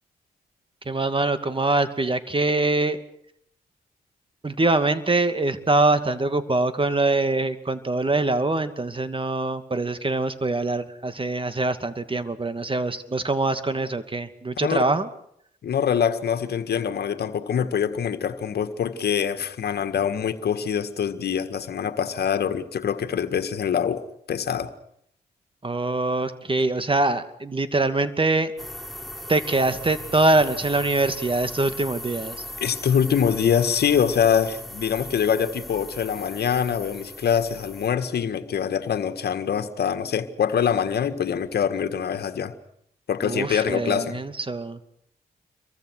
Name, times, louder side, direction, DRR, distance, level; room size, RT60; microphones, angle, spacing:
voice 1, 0.9-3.0 4.4-15.1 25.6-28.5 29.3-32.4 43.2-44.8, right 2 dB, 30° right, 10 dB, 2.5 m, -24 dB
voice 2, 15.6-24.8 32.6-42.5 43.1-44.2, left 8 dB, 65° left, 10 dB, 1.9 m, -24 dB
sound 1, 28.6-37.9, left 1 dB, ahead, 3.9 m, -38 dB
28.0 x 23.5 x 6.4 m, 0.72 s
hypercardioid pair, 40°, 18 cm